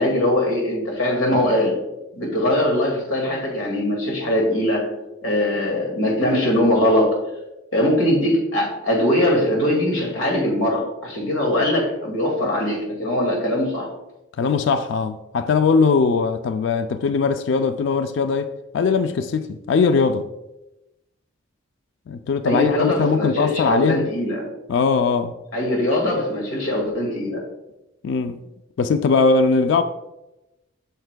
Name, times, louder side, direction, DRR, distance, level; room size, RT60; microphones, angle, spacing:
voice 1, 0.0-1.8 2.2-4.9 5.2-7.2 7.7-13.9 22.4-24.5 25.5-27.4, left 1 dB, 80° left, 2.0 m, -21 dB
voice 2, 14.4-20.3 22.1-24.1 24.7-25.3 28.0-28.4 28.8-29.8, left 4 dB, 60° left, 0.3 m, -20 dB
7.8 x 6.6 x 2.2 m
head